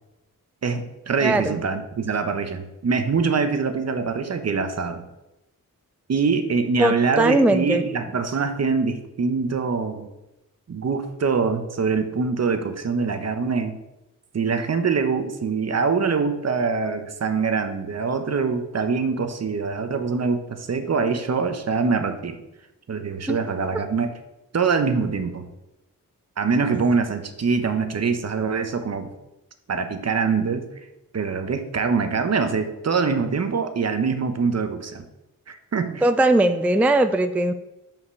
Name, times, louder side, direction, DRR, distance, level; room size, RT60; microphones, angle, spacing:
voice 1, 0.6-5.0 6.1-10.1 10.7-13.8 14.3-22.4 22.9-24.1 24.5-25.5 26.4-29.1 29.7-30.7 31.1-35.1 35.5-36.0, right 5 dB, 50° right, 8 dB, 0.9 m, -24 dB
voice 2, 1.2-1.6 6.8-7.8 23.3-23.4 36.0-37.5, right 1 dB, 5° right, 9 dB, 0.4 m, -19 dB
5.7 x 5.2 x 6.3 m, 0.95 s
cardioid pair, 75°, 34 cm